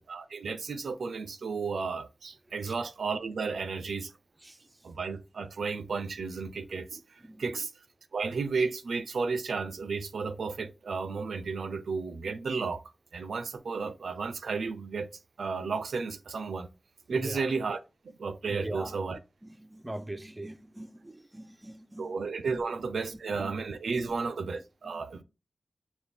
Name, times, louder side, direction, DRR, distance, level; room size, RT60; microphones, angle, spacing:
voice 1, 0.0-4.1 4.8-7.7 8.1-12.8 13.1-15.1 15.4-16.7 17.1-17.8 18.0-19.2 22.0-25.2, right 4 dB, 85° right, 0.3 m, -33 dB
voice 2, 4.4-4.9 6.9-7.7 17.1-17.5 18.5-19.0 19.4-23.0 24.0-24.4 24.8-25.2, right 1 dB, 15° right, 0.4 m, -43 dB
5.6 x 2.2 x 3.4 m
cardioid pair, 65°, 0 cm